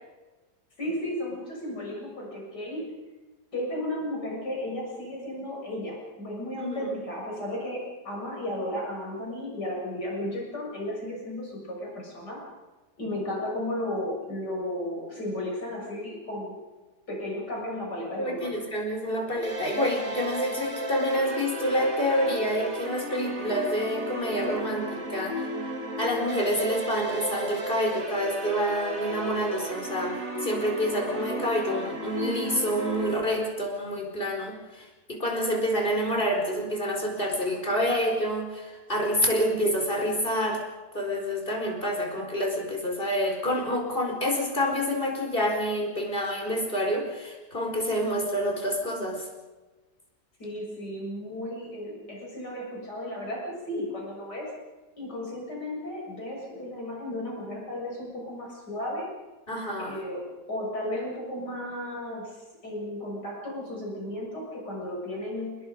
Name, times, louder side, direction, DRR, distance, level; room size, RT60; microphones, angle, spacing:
voice 1, 0.8-3.0 3.5-12.4 13.0-16.6 17.1-18.6 50.4-54.5 55.0-59.1 59.8-65.6, left 1 dB, 85° left, -2 dB, 7.7 m, -34 dB
voice 2, 18.2-25.5 26.0-40.6 40.9-49.3 59.5-60.0, equal, 30° left, 1 dB, 4.9 m, -28 dB
sound 1, 19.4-33.1, right 1 dB, 55° right, 3.2 m, -34 dB
30.0 x 20.5 x 5.3 m, 1.2 s
omnidirectional pair, 1.8 m